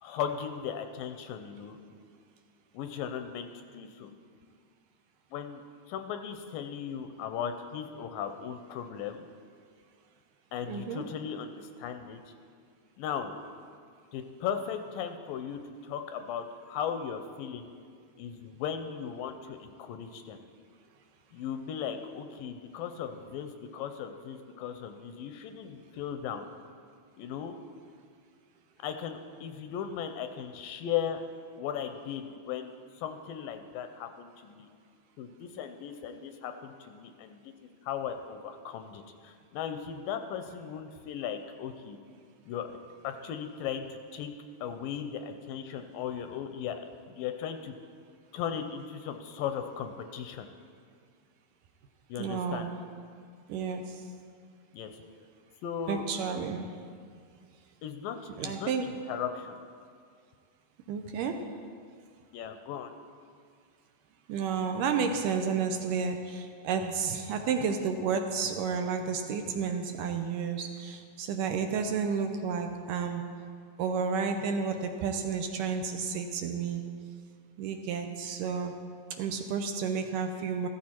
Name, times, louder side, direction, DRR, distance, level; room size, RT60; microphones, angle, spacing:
voice 1, 0.0-1.8 2.7-3.5 3.7-4.1 5.3-5.6 5.9-9.3 10.5-12.2 13.0-13.4 14.1-17.7 18.2-20.4 21.3-26.5 27.2-27.6 28.8-31.2 31.6-32.7 33.0-34.7 35.2-37.5 37.8-42.0 42.5-42.8 43.0-44.3 44.6-46.8 47.1-47.7 48.3-50.5 52.1-52.7 54.7-54.9 55.6-56.1 57.8-59.6 62.3-62.9, left 8 dB, 80° left, 7 dB, 2.2 m, -37 dB
voice 2, 10.7-11.1 52.2-52.7 53.5-54.1 55.9-56.7 58.4-58.9 60.9-61.4 64.3-73.2 73.8-76.8 77.6-78.7 79.2-80.7, right 6 dB, 75° right, 5 dB, 2.1 m, -31 dB
14.5 x 14.0 x 4.4 m, 2.1 s
omnidirectional pair, 4.2 m